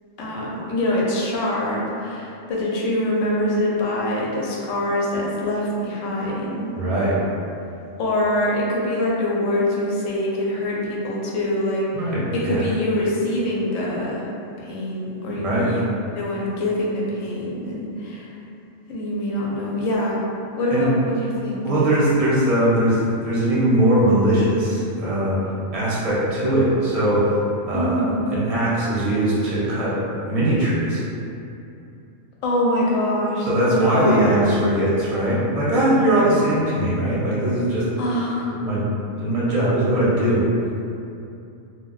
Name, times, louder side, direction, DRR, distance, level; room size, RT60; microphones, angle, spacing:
voice 1, 0.2-6.7 8.0-11.9 12.3-14.3 14.6-15.8 16.2-18.3 18.9-20.2 20.6-21.7 27.7-28.2 32.4-34.7 38.0-38.5, left 1 dB, 75° left, -4 dB, 0.9 m, -24 dB
voice 2, 6.8-7.1 11.9-12.6 15.4-15.7 20.7-20.9 21.6-25.4 25.7-27.4 27.6-28.0 28.3-30.0 30.3-31.1 33.5-37.9 38.5-38.8 39.2-40.4, right 1 dB, 40° right, -8 dB, 0.6 m, -20 dB
2.2 x 2.1 x 3.8 m, 2.7 s
omnidirectional pair, 1.4 m